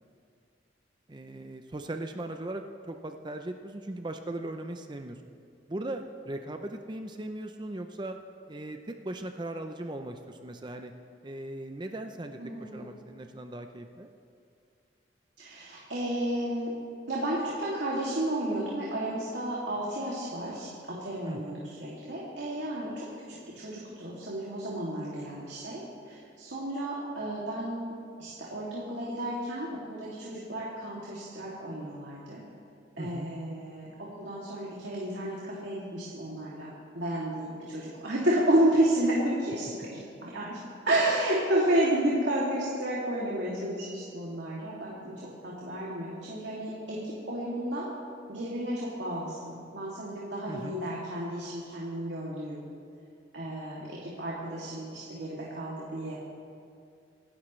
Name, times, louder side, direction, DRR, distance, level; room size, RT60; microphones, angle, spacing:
voice 1, 1.1-5.2 5.7-8.2 8.5-10.9 11.2-14.1 21.2-21.6 33.0-33.3 50.5-50.8, right 1 dB, 25° right, 6 dB, 0.6 m, -38 dB
voice 2, 12.4-12.8 15.4-16.7 17.1-23.0 23.5-25.8 26.1-27.9 28.2-32.4 33.0-40.6 40.8-47.9 48.3-52.6 53.3-56.1, right 1 dB, 75° right, -6 dB, 2.6 m, -31 dB
26.5 x 12.0 x 3.2 m, 2.4 s
head